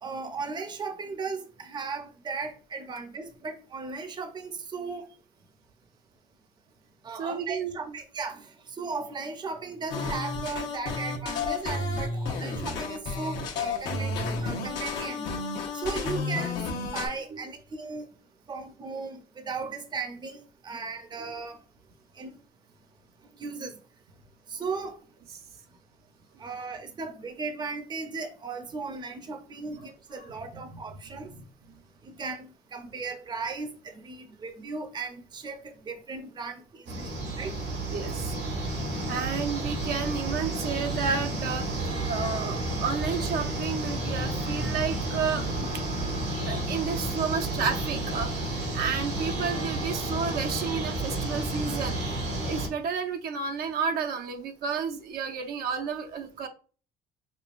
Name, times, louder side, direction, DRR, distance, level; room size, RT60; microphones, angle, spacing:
voice 1, 0.0-5.0 7.0-8.4 8.8-15.3 15.7-16.6 16.9-18.1 18.5-21.6 22.2-22.3 23.4-23.7 24.5-25.0 26.4-31.3 32.2-33.7 33.9-37.5, right 4 dB, 25° right, 0.6 m, -36 dB
voice 2, 7.1-7.8 15.0-15.1 17.3-17.4 21.2-21.3 25.3-25.4 29.7-29.9 30.2-30.6 31.2-31.8 37.9-38.2 39.1-45.8 46.4-56.5, right 6 dB, 65° right, 0.7 m, -32 dB
sound 1, 9.9-17.1, left 3 dB, 80° left, 1.0 m, -31 dB
sound 2, 36.9-52.7, right 1 dB, 85° right, 1.5 m, -31 dB
5.2 x 2.2 x 2.5 m
cardioid pair, 110°, 17 cm